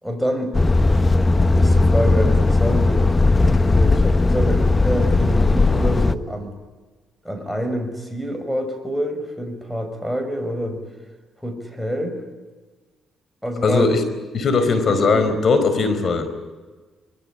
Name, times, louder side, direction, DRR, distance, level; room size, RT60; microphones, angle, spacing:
voice 1, 0.0-0.6 1.5-6.5 7.2-10.8 11.4-12.2 13.4-13.9 14.6-15.3, equal, ahead, 8 dB, 5.9 m, -27 dB
Truck, 0.5-6.1, left 3 dB, 20° left, 1.0 m, -17 dB
voice 2, 13.6-14.0 14.3-16.3, left 4 dB, 50° left, 10 dB, 4.6 m, -19 dB
25.0 x 22.0 x 9.9 m, 1.3 s
cardioid pair, 90°, 0 cm